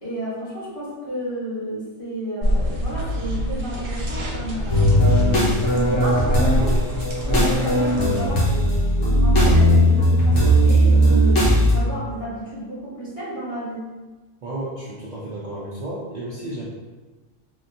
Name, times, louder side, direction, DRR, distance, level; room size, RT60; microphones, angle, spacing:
voice 1, 0.0-5.0 5.6-6.8 7.2-13.9, right 1 dB, 25° left, -10 dB, 1.2 m, -32 dB
sound 1, 2.4-8.3, equal, 55° right, 0.7 m, -25 dB
sound 2, 4.7-11.7, equal, 75° left, 1.2 m, -17 dB
voice 2, 14.4-16.6, right 1 dB, 80° right, -7 dB, 0.3 m, -32 dB
3.6 x 2.1 x 2.7 m, 1.2 s
omnidirectional pair, 1.3 m